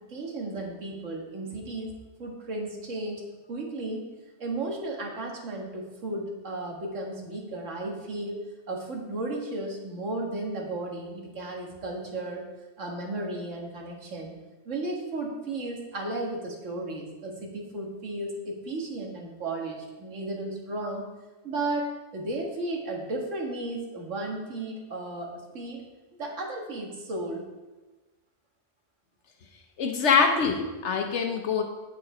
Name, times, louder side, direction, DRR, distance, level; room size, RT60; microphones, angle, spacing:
voice 1, 0.1-1.9 2.2-3.2 3.5-4.0 4.4-8.4 8.7-12.5 12.8-14.4 14.7-21.1 21.4-25.8 26.2-27.4, right 2 dB, 85° right, 0 dB, 1.9 m, -34 dB
voice 2, 29.8-31.6, left 5 dB, 70° left, 4 dB, 1.1 m, -24 dB
9.1 x 5.8 x 4.9 m, 1.1 s
omnidirectional pair, 1.2 m